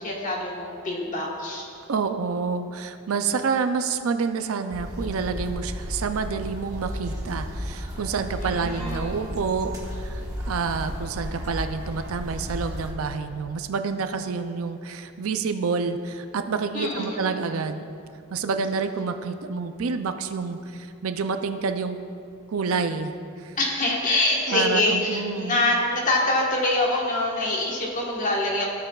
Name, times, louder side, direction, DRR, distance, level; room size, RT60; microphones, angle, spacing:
voice 1, 0.0-1.7 8.4-9.3 16.7-17.3 23.6-28.7, left 2 dB, 35° left, -2 dB, 1.3 m, -25 dB
voice 2, 1.9-17.8 18.3-22.0 22.5-23.1 23.4-23.6 24.5-25.6, right 5 dB, 70° right, 8 dB, 0.4 m, -28 dB
sound 1, 4.7-12.9, equal, 15° right, 1.2 m, -34 dB
16.0 x 6.7 x 2.4 m, 2.5 s
head